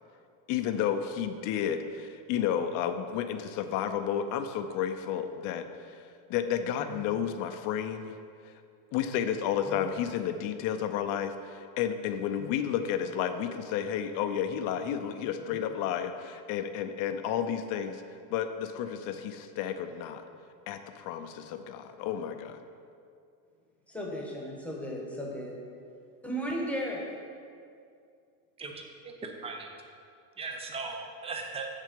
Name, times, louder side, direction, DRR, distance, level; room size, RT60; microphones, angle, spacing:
voice 1, 0.5-6.0 6.3-8.1 8.9-18.0 18.3-20.2 20.7-22.6, left 9 dB, 40° left, 8 dB, 0.6 m, -31 dB
voice 2, 23.9-25.6 26.2-27.0, equal, 5° left, -2 dB, 1.1 m, -35 dB
voice 3, 28.6-29.7 30.4-31.7, right 4 dB, 15° right, 3 dB, 0.5 m, -38 dB
7.4 x 6.6 x 5.2 m, 2.3 s
supercardioid pair, 145°, 49 cm